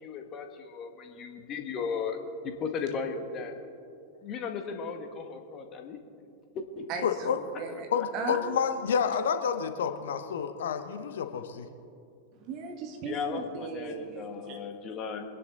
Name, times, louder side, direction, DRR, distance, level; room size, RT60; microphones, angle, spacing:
voice 1, 0.0-2.2 2.4-3.5 4.2-6.0 6.5-6.9 13.0-15.2, left 5 dB, 30° left, 4 dB, 1.8 m, -36 dB
voice 2, 7.0-7.4 7.9-11.7, left 7 dB, 60° left, 8 dB, 1.0 m, -29 dB
voice 3, 7.6-8.5 11.4-11.5 12.4-14.6, right 5 dB, 40° right, 4 dB, 2.0 m, -38 dB
25.0 x 10.5 x 4.0 m, 2.5 s
figure-of-eight pair, 90°, 0 cm